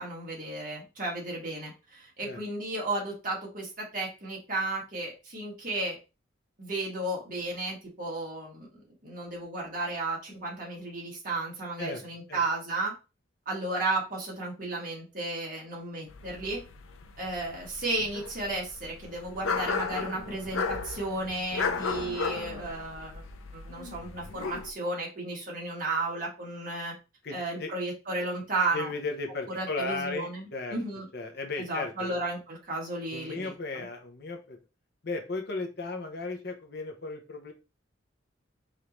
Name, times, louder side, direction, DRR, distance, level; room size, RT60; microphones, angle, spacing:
voice 1, 0.0-6.0 6.6-12.9 13.5-16.6 17.2-23.2 23.5-26.9 27.3-28.9 29.5-31.1 31.6-33.8, right 2 dB, 45° right, -3 dB, 1.8 m, -34 dB
sound 1, 16.1-24.7, left 5 dB, 85° left, 0.6 m, -35 dB
voice 2, 27.2-27.7 28.7-30.8 31.1-32.2 33.1-34.6 35.0-37.5, left 3 dB, 55° left, 4 dB, 0.9 m, -35 dB
5.1 x 2.8 x 3.0 m, 0.29 s
head